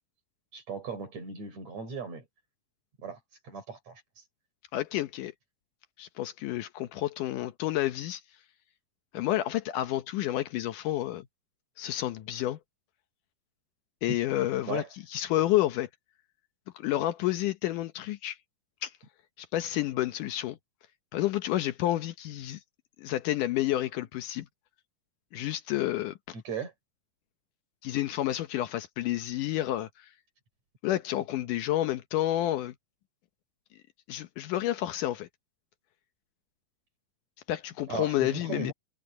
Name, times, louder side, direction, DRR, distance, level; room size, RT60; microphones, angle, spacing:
voice 1, 0.5-2.3 3.0-3.2 3.4-4.2 14.7-14.9 26.3-26.7 37.9-38.7, right 5 dB, 50° right, 6.5 m, -37 dB
voice 2, 4.7-5.3 6.0-8.2 9.1-11.3 11.8-12.6 14.0-14.8 15.1-15.9 16.7-18.4 18.8-18.9 19.4-20.6 21.1-22.6 23.0-24.5 25.3-26.4 27.8-30.1 30.8-32.7 34.1-35.3 37.5-38.7, left 14 dB, 75° left, 2.3 m, -30 dB
omnidirectional pair, 4.0 m